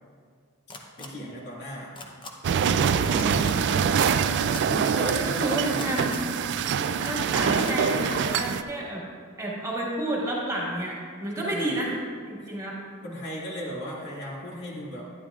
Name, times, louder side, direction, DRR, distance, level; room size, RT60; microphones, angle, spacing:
sound 1, 0.7-1.1 1.9-2.3 3.1-3.5 4.5-5.0 5.8-6.3 7.0-7.1 7.6-7.8, left 3 dB, 20° left, 0.7 m, -40 dB
voice 1, 1.0-2.0 4.6-5.9 11.4-11.8 12.4-12.5 13.0-15.0, equal, 50° left, -4 dB, 2.1 m, -37 dB
sound 2, 2.4-8.6, right 7 dB, 55° right, 0.3 m, -24 dB
voice 2, 3.2-3.8 5.2-6.2 6.8-9.0 9.4-11.0 11.2-12.0 12.3-12.8, right 1 dB, 15° right, -4 dB, 1.8 m, -30 dB
12.0 x 10.0 x 2.4 m, 2.1 s
head